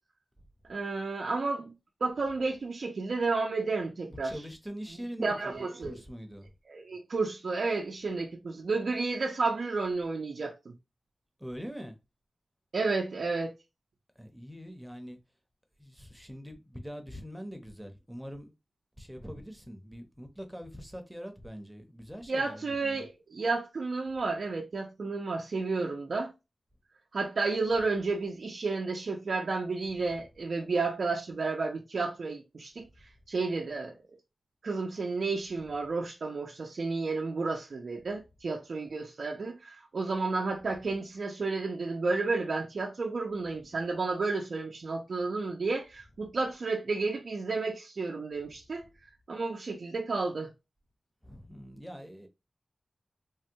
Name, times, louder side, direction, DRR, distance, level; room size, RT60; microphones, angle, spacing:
voice 1, 0.7-1.7 2.0-4.4 5.2-6.0 6.7-10.7 12.7-13.5 22.3-26.3 27.1-32.9 33.3-33.9 34.6-48.9 49.3-50.5, right 3 dB, 70° right, 0.5 m, -31 dB
voice 2, 4.1-6.5 11.4-12.0 14.2-15.2 15.8-18.5 19.0-23.0 30.0-30.2 40.7-40.8 51.2-52.3, equal, 5° right, 0.6 m, -43 dB
3.4 x 2.2 x 2.7 m
wide cardioid pair, 95°, 0 cm